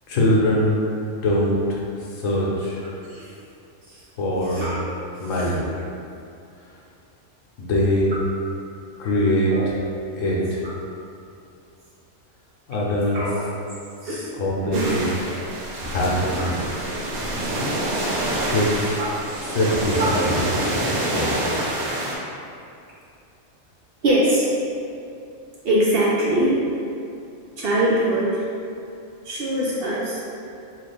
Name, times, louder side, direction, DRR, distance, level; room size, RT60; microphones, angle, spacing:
voice 1, 0.1-0.8 1.2-1.8 2.2-2.8 4.2-4.7 5.2-5.6 7.6-8.1 9.0-9.5 10.1-10.6 12.7-13.2 14.4-15.0 15.9-16.7 18.5-19.0 19.5-20.4 21.1-21.3, left 1 dB, 85° left, -5 dB, 1.1 m, -22 dB
voice 2, 4.5-4.8 5.3-5.5 9.5-9.6 10.6-10.7 13.1-13.3 14.0-14.3 14.6-14.9 15.3-15.4 19.0-19.1 20.0-20.1 24.0-24.5 25.6-26.6 27.6-28.4 29.2-30.2, right 1 dB, 60° right, -6 dB, 0.6 m, -22 dB
sound 1, 14.7-22.1, right 1 dB, 80° right, 1.0 m, -26 dB
3.2 x 2.4 x 3.3 m, 2.6 s
omnidirectional pair, 1.3 m